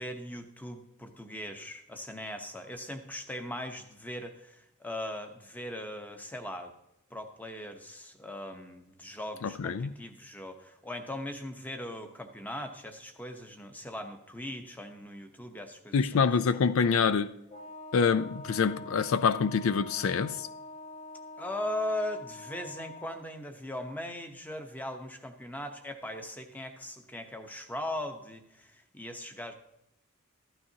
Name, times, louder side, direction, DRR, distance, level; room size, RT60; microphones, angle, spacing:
voice 1, 0.0-6.7 7.1-16.2 21.4-29.5, left 1 dB, 10° left, 0.9 m, -39 dB
voice 2, 9.4-9.9 15.9-17.3 17.9-20.5, left 5 dB, 65° left, 0.4 m, -26 dB
Wind instrument woodwind instrument, 17.5-23.2, left 2 dB, 30° left, 1.1 m, -45 dB
14.5 x 12.0 x 2.8 m
head